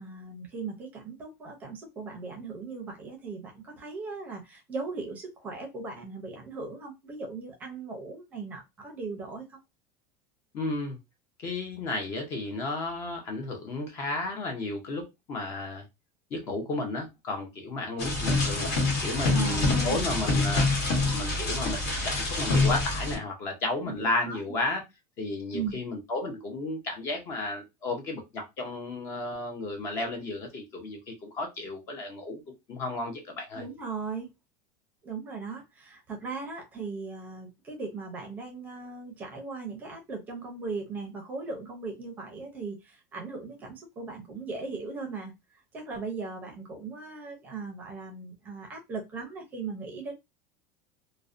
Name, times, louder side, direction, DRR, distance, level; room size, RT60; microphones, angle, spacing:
voice 1, 0.0-9.6 19.3-20.1 23.9-24.4 25.5-25.7 33.5-34.3 35.0-45.3 45.7-50.2, right 4 dB, 20° right, 0.5 m, -38 dB
voice 2, 10.5-11.0 11.4-15.9 16.3-18.7 19.0-20.7 21.1-24.8 25.2-32.4 32.7-33.6, left 2 dB, 30° left, 0.6 m, -33 dB
sound 1, 18.0-23.2, left 2 dB, 75° left, 1.1 m, -26 dB
2.5 x 2.0 x 2.4 m
cardioid pair, 180°, 9 cm